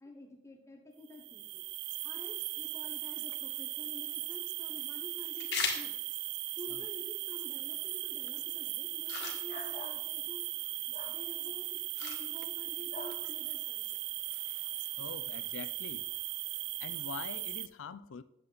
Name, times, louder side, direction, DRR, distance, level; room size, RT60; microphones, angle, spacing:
voice 1, 0.0-1.6 2.0-6.0 6.6-10.4 10.9-13.8, left 1 dB, 15° left, 1.1 m, -50 dB
sound 1, 1.1-17.7, right 16 dB, 55° right, 0.4 m, -38 dB
sound 2, 3.7-16.7, left 5 dB, 55° left, 2.0 m, -46 dB
sound 3, 9.5-10.0 10.9-11.2 12.9-13.2, left 2 dB, 40° left, 1.6 m, -45 dB
voice 2, 15.0-16.1 16.8-18.2, left 6 dB, 90° left, 0.5 m, -44 dB
9.7 x 7.4 x 4.1 m
head